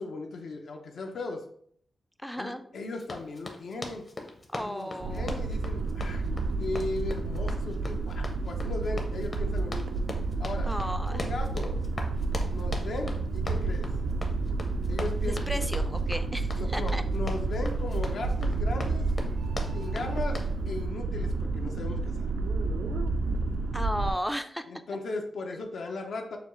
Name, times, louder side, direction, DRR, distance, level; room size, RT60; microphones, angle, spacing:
voice 1, 0.0-1.4 2.4-4.1 4.6-6.2 6.6-10.0 10.4-10.7 11.1-11.8 12.5-13.9 14.9-15.7 16.6-19.1 19.7-20.4 20.7-22.3 24.7-26.4, left 3 dB, 75° left, 3 dB, 0.6 m, -37 dB
voice 2, 2.2-2.6 4.5-5.3 10.6-11.2 15.2-17.0 23.7-24.6, equal, ahead, 9 dB, 0.3 m, -34 dB
Run, 3.0-20.6, left 2 dB, 35° left, 0.7 m, -41 dB
sound 1, 5.0-24.1, right 3 dB, 90° right, 0.4 m, -30 dB
6.7 x 2.4 x 3.0 m, 0.63 s
wide cardioid pair, 125°, 0 cm